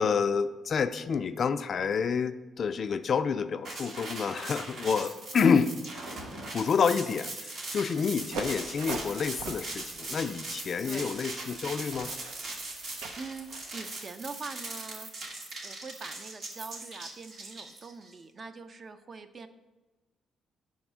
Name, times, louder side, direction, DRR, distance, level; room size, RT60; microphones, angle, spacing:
voice 1, 0.0-5.7 6.5-12.1, left 6 dB, 50° left, 11 dB, 0.3 m, -28 dB
sound 1, 3.6-18.1, right 2 dB, 65° right, 1.4 m, -40 dB
sound 2, 8.2-13.7, right 4 dB, 90° right, 0.6 m, -42 dB
voice 2, 12.7-15.1 15.6-19.5, right 4 dB, 40° right, 9 dB, 0.5 m, -44 dB
5.4 x 4.3 x 6.0 m, 1.1 s
cardioid pair, 90°, 0 cm